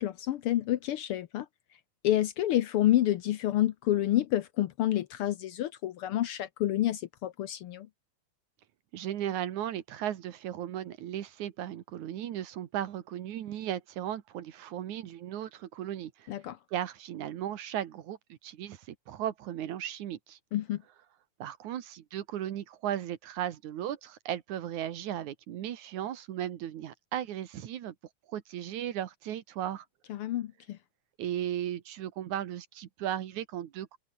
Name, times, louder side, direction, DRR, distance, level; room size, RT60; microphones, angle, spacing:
voice 1, 0.0-1.5 2.0-7.9 16.3-16.6 20.5-20.8 30.1-30.8, left 13 dB, 75° left, 1.2 m, -28 dB
voice 2, 8.9-16.3 16.7-20.4 21.4-27.9 28.3-29.8 31.2-34.0, right 11 dB, 75° right, 2.8 m, -36 dB
omnidirectional pair, 3.4 m